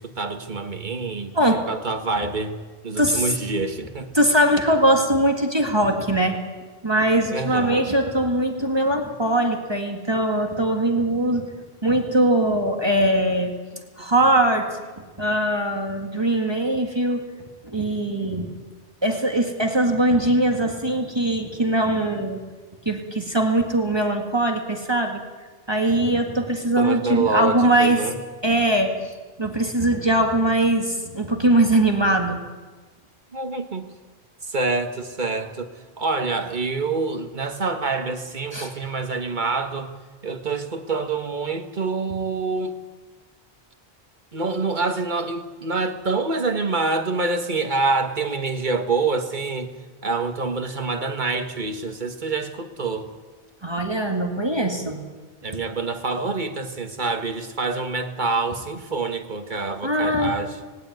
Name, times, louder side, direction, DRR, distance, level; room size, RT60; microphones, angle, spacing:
voice 1, 0.0-1.3 1.7-2.6 2.8-4.1 7.3-7.9 14.0-14.1 26.8-28.2 33.3-33.8 34.4-35.7 36.0-39.9 40.2-42.8 44.3-49.7 50.0-53.1 55.4-60.6, right 3 dB, 40° right, 6 dB, 1.7 m, -26 dB
voice 2, 4.1-6.4 6.8-11.5 11.8-13.5 14.0-14.7 15.0-17.2 17.6-18.5 19.0-22.4 22.8-25.2 25.7-28.0 28.4-28.9 29.4-32.4 38.5-38.7 53.6-55.0 59.8-60.3, right 1 dB, 20° right, 3 dB, 2.0 m, -21 dB
19.0 x 17.0 x 9.5 m, 1.3 s
omnidirectional pair, 1.2 m